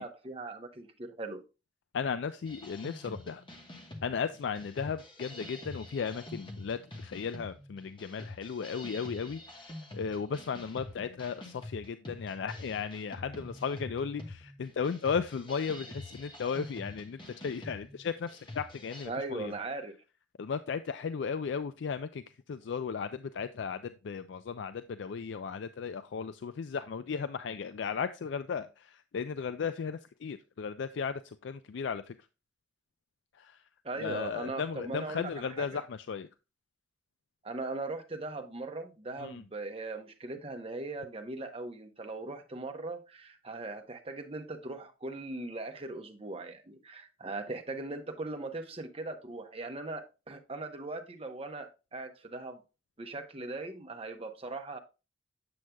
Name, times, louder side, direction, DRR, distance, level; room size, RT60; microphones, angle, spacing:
voice 1, 0.0-1.4 19.1-19.9 33.8-35.7 37.4-52.6 53.0-54.8, right 2 dB, 30° right, 0.8 m, -39 dB
voice 2, 1.9-3.4 4.0-19.5 20.4-22.2 22.5-32.2 33.3-33.6 34.0-36.3 39.2-39.4, left 6 dB, 75° left, 0.4 m, -35 dB
sound 1, 2.5-19.1, left 1 dB, 25° left, 1.2 m, -46 dB
7.8 x 7.3 x 2.2 m
head